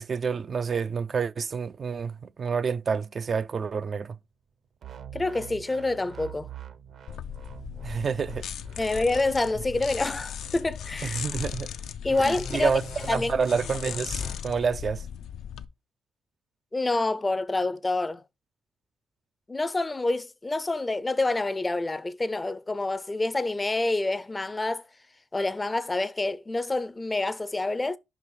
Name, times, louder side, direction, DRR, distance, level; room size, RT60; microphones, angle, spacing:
voice 1, 0.0-4.2 7.8-8.5 11.0-11.7 12.2-12.8 13.1-15.1, right 5 dB, 45° right, 0.4 m, -28 dB
sound 1, 4.8-11.3 12.1-14.4, right 6 dB, 65° right, 0.9 m, -44 dB
voice 2, 5.1-6.5 8.8-11.2 12.0-12.8 13.1-13.3 16.7-18.2 19.5-24.9 25.3-28.0, left 2 dB, 20° left, 0.5 m, -27 dB
sound 2, 7.1-15.6, left 8 dB, 70° left, 0.5 m, -37 dB
5.5 x 4.7 x 5.4 m
cardioid pair, 90°, 0 cm